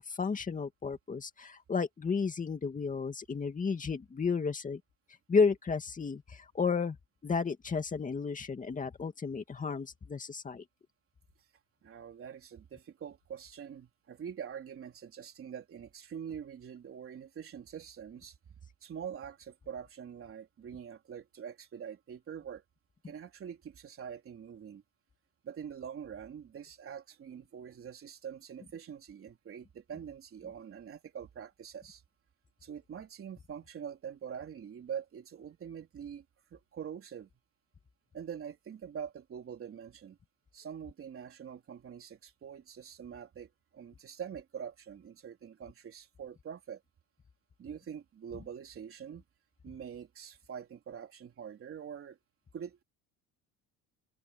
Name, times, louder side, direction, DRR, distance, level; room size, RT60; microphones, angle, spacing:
voice 1, 0.0-4.8 5.3-7.0 7.2-10.6, left 5 dB, 20° left, 2.2 m, -32 dB
voice 2, 11.8-18.4 18.8-22.6 23.0-24.8 25.4-32.0 32.6-36.3 36.5-37.3 38.1-40.2 40.5-46.8 47.6-49.2 49.6-52.2 52.5-52.8, right 8 dB, 35° right, 3.4 m, -44 dB
open air
cardioid pair, 165°, 40 cm